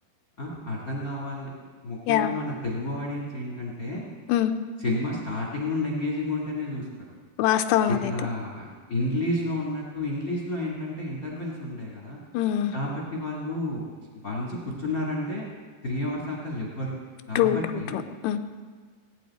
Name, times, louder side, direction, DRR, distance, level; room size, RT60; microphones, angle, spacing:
voice 1, 0.4-1.5 1.8-4.1 4.8-6.8 7.9-12.2 12.7-13.8 14.2-15.5 15.8-16.9 17.3-18.0, left 1 dB, 45° left, -3 dB, 1.1 m, -31 dB
voice 2, 7.4-8.1 12.3-12.7 17.4-18.4, left 11 dB, 85° left, 8 dB, 2.8 m, -24 dB
18.5 x 9.3 x 4.2 m, 1.6 s
omnidirectional pair, 4.8 m